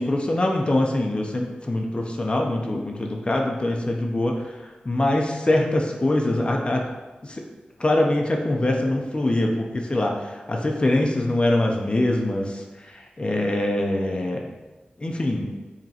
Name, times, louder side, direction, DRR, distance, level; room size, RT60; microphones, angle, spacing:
voice 1, 0.0-6.9 7.2-7.4 7.8-14.5 15.0-15.5, left 1 dB, 35° left, 1 dB, 0.5 m, -24 dB
5.2 x 3.0 x 2.8 m, 1.2 s
cardioid pair, 60°, 3 cm